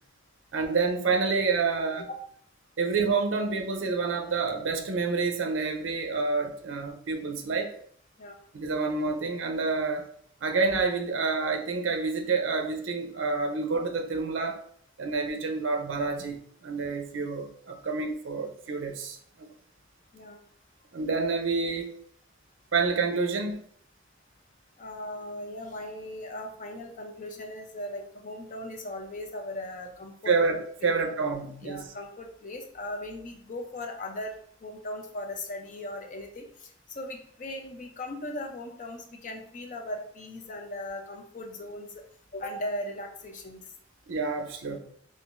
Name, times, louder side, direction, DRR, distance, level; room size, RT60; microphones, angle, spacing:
voice 1, 0.5-2.0 2.8-7.7 8.5-10.0 10.4-14.6 15.0-16.4 16.6-19.5 20.9-22.0 22.7-23.6 30.3-31.8 44.1-44.8, right 4 dB, 70° right, 4 dB, 0.5 m, -28 dB
voice 2, 24.8-30.4 30.8-31.0 31.6-34.3 34.6-36.7 36.9-41.9 42.3-43.7 44.7-44.8, left 1 dB, 40° left, 3 dB, 0.5 m, -38 dB
3.6 x 2.6 x 2.5 m, 0.62 s
head